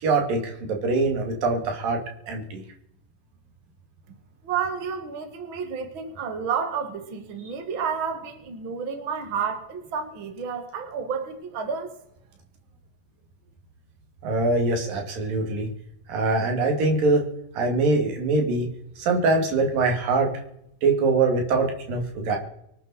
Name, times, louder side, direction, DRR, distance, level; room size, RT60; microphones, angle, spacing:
voice 1, 0.0-2.0 2.3-2.6 14.2-15.7 16.1-17.3 17.5-18.7 19.0-20.3 20.8-22.4, right 3 dB, 80° right, 2 dB, 4.1 m, -23 dB
voice 2, 4.4-11.9, right 6 dB, 40° right, 6 dB, 2.3 m, -30 dB
25.0 x 9.0 x 4.2 m, 0.77 s
omnidirectional pair, 3.9 m